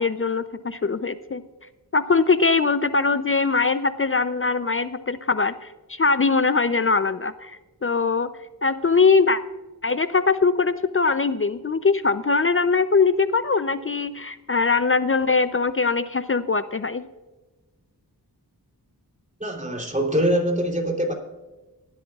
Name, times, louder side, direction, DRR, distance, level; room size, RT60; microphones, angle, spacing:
voice 1, 0.0-1.4 1.9-8.3 8.6-9.4 9.8-17.1, left 4 dB, 35° left, 12 dB, 0.5 m, -21 dB
voice 2, 19.4-21.1, equal, 20° right, 1 dB, 3.2 m, -23 dB
19.0 x 12.0 x 2.4 m, 1.1 s
wide cardioid pair, 55°, 39 cm